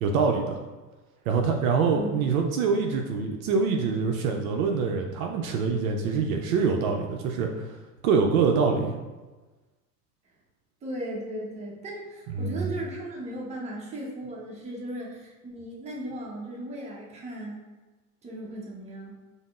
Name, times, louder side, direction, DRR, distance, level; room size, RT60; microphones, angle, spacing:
voice 1, 0.0-0.6 1.3-7.7 8.0-8.9 12.3-12.7, right 5 dB, 60° right, 3 dB, 0.5 m, -25 dB
voice 2, 1.9-2.2 10.8-17.6 18.2-19.1, right 1 dB, 15° right, -3 dB, 0.6 m, -37 dB
5.1 x 2.0 x 2.3 m, 1.2 s
hypercardioid pair, 85°, 48 cm